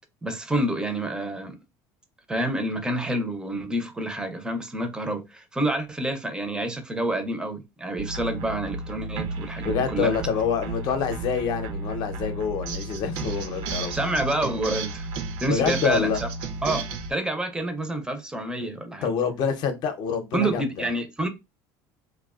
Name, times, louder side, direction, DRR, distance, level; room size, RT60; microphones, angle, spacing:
voice 1, 0.2-1.6 2.3-10.1 13.9-15.1 15.4-16.3 16.6-19.1 20.3-21.3, right 1 dB, 10° right, 0.4 m, -28 dB
sound 1, 8.0-17.1, right 3 dB, 70° right, 0.5 m, -33 dB
voice 2, 9.6-14.0 15.5-16.2 19.0-20.9, left 6 dB, 55° left, 0.6 m, -26 dB
2.4 x 2.2 x 2.3 m
cardioid pair, 125°, 8 cm